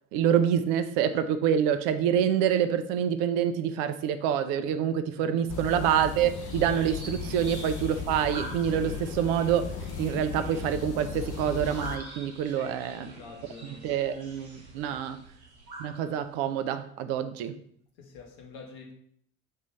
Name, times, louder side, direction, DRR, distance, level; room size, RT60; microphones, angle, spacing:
voice 1, 0.1-13.1 13.6-15.2 15.8-17.6, right 9 dB, 65° right, 0.6 m, -27 dB
voice 2, 5.2-5.5 7.1-7.2 12.4-13.9 14.7-15.0 18.0-18.9, left 4 dB, 65° left, 1.4 m, -47 dB
sound 1, 5.5-12.0, left 6 dB, 50° left, 0.8 m, -37 dB
sound 2, 6.4-16.7, right 2 dB, 90° right, 1.2 m, -46 dB
6.5 x 3.1 x 5.4 m
figure-of-eight pair, 50°, 40 cm